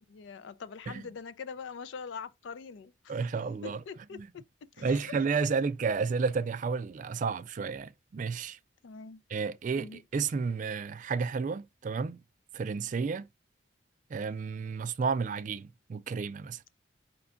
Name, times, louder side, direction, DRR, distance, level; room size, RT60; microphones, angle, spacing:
voice 1, 0.1-3.2 3.6-4.4 4.7-5.1 8.8-9.2 9.8-10.0, left 5 dB, 70° left, 0.4 m, -43 dB
voice 2, 3.1-3.8 4.1-4.3 4.8-8.6 9.3-12.2 12.5-13.3 14.1-16.6, right 5 dB, 40° right, 0.3 m, -31 dB
5.0 x 2.3 x 3.7 m
head